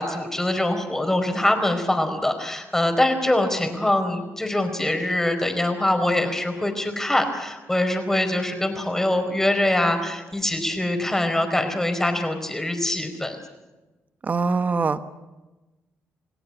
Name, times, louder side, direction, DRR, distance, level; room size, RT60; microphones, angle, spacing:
voice 1, 0.0-13.4, left 1 dB, 10° left, 5 dB, 4.6 m, -23 dB
voice 2, 14.3-15.0, right 4 dB, 35° right, 11 dB, 1.4 m, -22 dB
29.0 x 17.5 x 8.7 m, 1.1 s
cardioid pair, 105°, 5 cm